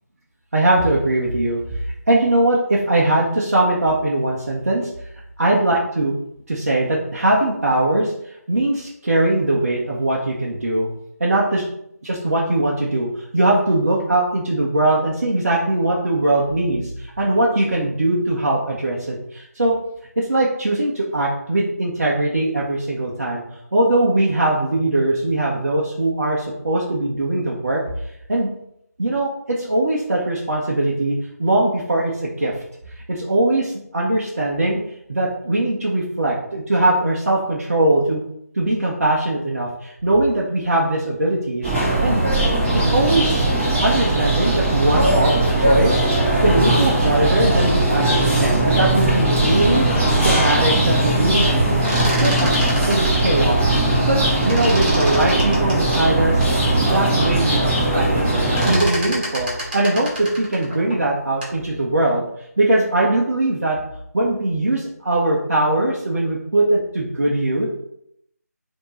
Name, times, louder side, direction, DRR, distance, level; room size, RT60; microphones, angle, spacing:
voice 1, 0.5-4.9 5.4-6.2 6.5-10.9 11.2-11.6 12.0-19.8 20.2-23.4 23.7-27.8 28.3-28.5 29.0-29.3 29.6-32.5 32.9-34.8 35.1-38.2 38.5-42.2 42.7-43.5 43.8-49.9 50.2-51.5 52.2-52.6 52.9-54.2 54.4-63.8 64.1-67.7, right 2 dB, 55° right, -4 dB, 0.9 m, -21 dB
sound 1, 41.6-58.8, right 1 dB, 10° right, 1.8 m, -19 dB
sound 2, 51.7-54.2 54.4-56.6 57.1-57.2 57.4-57.8 58.1-61.6, equal, 35° right, 1.8 m, -29 dB
4.4 x 3.0 x 4.1 m, 0.76 s
figure-of-eight pair, 160°, 9 cm